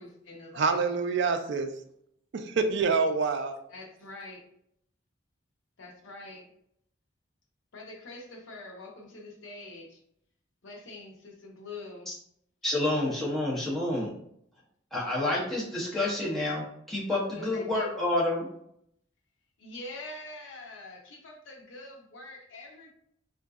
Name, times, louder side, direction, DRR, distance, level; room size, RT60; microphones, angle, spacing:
voice 1, 0.0-0.8 3.7-4.4 5.8-6.4 7.7-10.0 10.6-12.1 17.4-17.9 19.6-22.9, left 2 dB, 75° left, 1 dB, 0.7 m, -44 dB
voice 2, 0.6-1.7 2.3-3.6, right 4 dB, 60° right, 7 dB, 0.4 m, -26 dB
voice 3, 12.6-14.1 14.9-18.5, left 2 dB, ahead, -7 dB, 0.8 m, -29 dB
3.7 x 2.5 x 2.3 m, 0.71 s
head